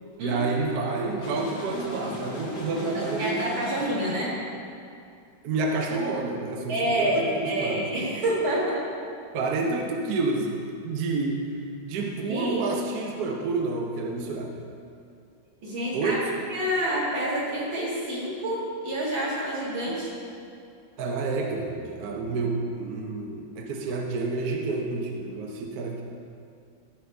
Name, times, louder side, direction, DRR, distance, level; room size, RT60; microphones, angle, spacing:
voice 1, 0.2-3.4 5.4-8.0 9.3-10.5 10.8-11.4 11.8-14.7 15.9-16.2 21.0-26.0, right 3 dB, 60° right, 0 dB, 1.2 m, -29 dB
sound 1, 1.2-4.4, left 1 dB, 45° left, 1.5 m, -37 dB
voice 2, 2.9-4.4 6.7-8.8 12.3-12.6 15.6-16.2 16.5-20.1, right 1 dB, 85° right, -7 dB, 2.8 m, -28 dB
13.5 x 5.7 x 3.4 m, 2.4 s
omnidirectional pair, 2.1 m